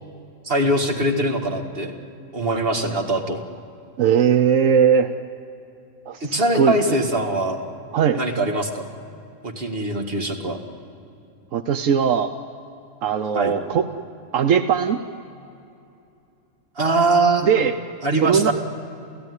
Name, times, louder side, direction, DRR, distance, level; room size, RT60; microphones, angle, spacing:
voice 1, 0.4-1.9 2.3-3.4 6.2-7.6 8.1-8.8 9.4-10.6 13.3-13.5 16.8-17.6 18.0-18.5, right 2 dB, 50° right, 3 dB, 2.3 m, -22 dB
voice 2, 4.0-5.1 6.1-6.9 7.9-8.2 11.5-12.3 13.0-13.8 14.3-15.0 17.4-17.7 18.2-18.5, right 7 dB, 85° right, 9 dB, 1.2 m, -19 dB
29.5 x 15.5 x 9.7 m, 2.7 s
omnidirectional pair, 1.3 m